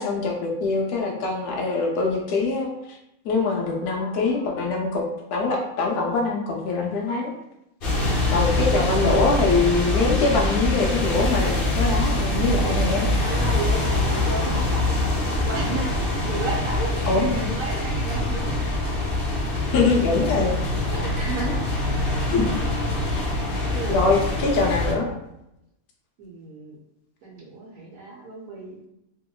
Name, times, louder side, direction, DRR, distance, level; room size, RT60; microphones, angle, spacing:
voice 1, 0.0-3.0 3.2-5.1 5.3-7.3 8.3-13.1 17.1-17.5 19.7-20.5 21.5-21.6 22.3-22.5 23.1-23.2 23.9-25.1, left 3 dB, 85° left, -1 dB, 1.1 m, -23 dB
voice 2, 3.6-4.5 7.9-8.7 13.2-18.6 20.9-21.6 21.9-22.0 23.7-24.0 26.2-26.8 27.2-28.9, right 3 dB, 70° right, -3 dB, 1.0 m, -34 dB
sound 1, 7.8-24.9, left 2 dB, 50° left, 0.7 m, -24 dB
2.8 x 2.8 x 2.3 m, 0.84 s
omnidirectional pair, 1.5 m